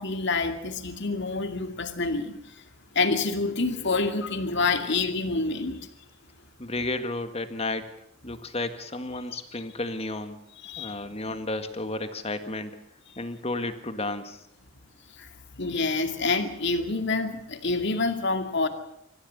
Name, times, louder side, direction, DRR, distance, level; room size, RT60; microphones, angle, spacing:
voice 1, 0.0-2.6 2.9-5.9 10.6-11.0 15.2-15.3 15.5-18.7, left 3 dB, 55° left, 8 dB, 2.3 m, -27 dB
voice 2, 6.6-7.9 8.2-10.4 10.8-12.8 13.2-14.4, left 2 dB, 30° left, 9 dB, 1.8 m, -32 dB
25.5 x 14.5 x 8.2 m, 0.76 s
head